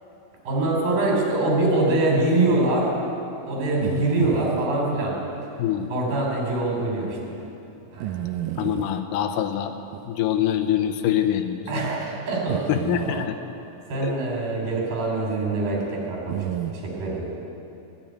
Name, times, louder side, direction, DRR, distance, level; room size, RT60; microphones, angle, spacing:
voice 1, 0.4-2.9 3.5-5.1 5.9-7.2 7.9-8.2 11.7-12.8 13.9-16.4 16.7-17.3, right 2 dB, 70° right, -2 dB, 4.9 m, -24 dB
sound 1, 3.8-4.7 5.8-5.9 6.5-6.6 8.0-9.0 9.9-10.1 11.2-11.3 12.5-13.3 16.3-16.7, right 13 dB, 90° right, 1.8 m, -31 dB
voice 2, 5.6-5.9 8.6-9.7 10.1-11.6 12.7-13.4 14.0-14.2, left 11 dB, 75° left, 8 dB, 2.3 m, -24 dB
21.5 x 7.3 x 9.2 m, 2.8 s
omnidirectional pair, 4.3 m